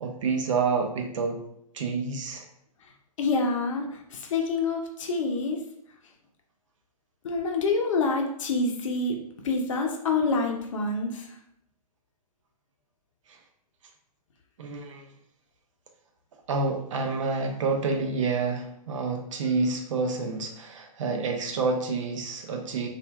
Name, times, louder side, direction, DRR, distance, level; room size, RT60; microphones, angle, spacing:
voice 1, 0.0-1.4 1.7-2.5 13.3-13.4 14.6-15.1 16.5-22.9, right 4 dB, 55° right, 4 dB, 0.6 m, -28 dB
voice 2, 3.2-5.6 7.2-9.2 9.4-11.3, left 3 dB, 55° left, 2 dB, 0.7 m, -27 dB
3.9 x 2.5 x 2.3 m, 0.74 s
figure-of-eight pair, 120°, 20 cm